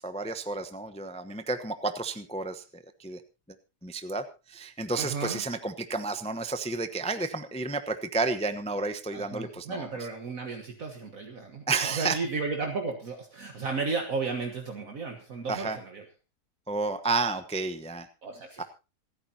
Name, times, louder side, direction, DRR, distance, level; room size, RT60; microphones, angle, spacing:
voice 1, 0.0-3.2 3.8-9.9 11.7-12.2 15.5-15.8 16.7-18.1 18.6-18.7, right 3 dB, 5° left, 9 dB, 0.7 m, -31 dB
voice 2, 5.0-5.4 9.1-16.0 18.2-18.6, right 4 dB, 55° right, 3 dB, 1.9 m, -34 dB
27.0 x 9.7 x 2.9 m, 0.30 s
omnidirectional pair, 1.7 m